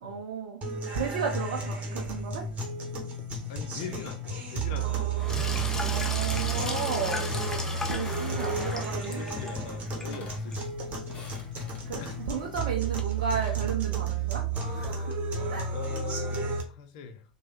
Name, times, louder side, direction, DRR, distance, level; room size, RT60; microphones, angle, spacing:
voice 1, 0.0-0.6 0.9-2.4 4.7-5.0 5.7-7.3 7.9-9.2 10.1-10.2 11.9-14.4 14.7-15.1 15.5-15.7, right 6 dB, 65° right, 0 dB, 0.5 m, -34 dB
sound 1, 0.6-16.6, right 4 dB, 30° right, 0.9 m, -32 dB
voice 2, 3.5-5.3 8.5-8.8 9.1-11.0 12.0-12.2 15.7-17.2, left 5 dB, 60° left, 9 dB, 0.5 m, -41 dB
Sink (filling or washing), 5.2-13.0, left 3 dB, 10° left, 0.7 m, -37 dB
sound 2, 8.0-8.7 9.6-9.7 10.0-10.5 11.0-11.9 13.0-13.7, left 1 dB, 30° left, 1.2 m, -48 dB
3.1 x 2.2 x 2.9 m, 0.36 s
figure-of-eight pair, 85°, 4 cm